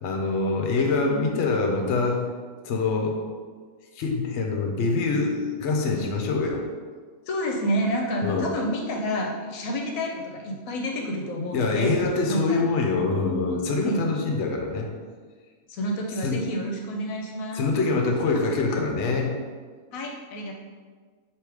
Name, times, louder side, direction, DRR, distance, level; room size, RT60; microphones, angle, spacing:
voice 1, 0.0-2.3 2.6-3.2 3.9-6.6 8.2-8.5 11.5-14.9 16.2-16.4 17.5-19.4, left 3 dB, 60° left, 2 dB, 0.8 m, -25 dB
voice 2, 7.3-11.9 12.3-12.6 13.8-14.0 15.7-17.6 19.9-20.5, equal, 75° left, 1 dB, 1.0 m, -29 dB
3.5 x 3.0 x 4.7 m, 1.5 s
omnidirectional pair, 1.5 m